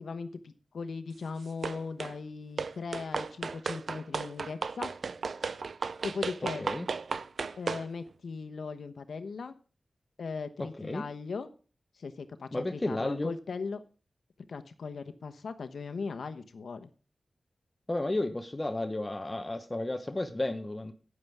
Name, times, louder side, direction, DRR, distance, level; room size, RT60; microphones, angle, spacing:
voice 1, 0.0-4.9 6.0-6.7 7.6-9.5 10.2-11.5 12.0-13.8 14.5-16.9, left 4 dB, 90° left, 9 dB, 1.1 m, -38 dB
sound 1, 1.6-2.2 2.6-7.9, right 5 dB, 75° right, 0.5 m, -35 dB
voice 2, 10.6-11.1 12.5-13.3 17.9-20.9, left 2 dB, 25° left, 9 dB, 1.0 m, -32 dB
12.0 x 9.6 x 3.5 m, 0.37 s
wide cardioid pair, 70°, 0 cm